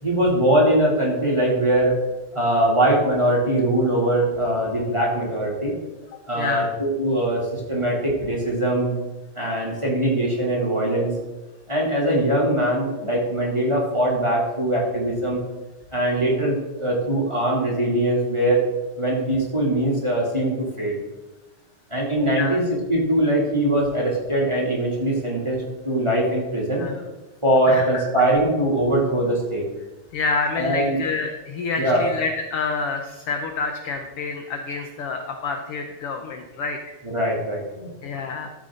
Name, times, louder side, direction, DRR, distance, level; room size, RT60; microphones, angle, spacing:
voice 1, 0.0-2.0 2.3-5.7 6.3-8.9 9.3-11.1 11.7-15.4 15.9-18.6 19.0-21.0 21.9-26.9 27.4-29.6 30.6-31.0 31.8-32.1 37.0-37.9, right 1 dB, 10° right, -5 dB, 2.4 m, -22 dB
voice 2, 6.4-6.7 22.3-22.6 26.8-27.0 27.7-28.0 30.1-36.8 38.0-38.5, left 4 dB, 75° left, 4 dB, 1.3 m, -28 dB
13.0 x 7.8 x 3.8 m, 1.1 s
omnidirectional pair, 3.6 m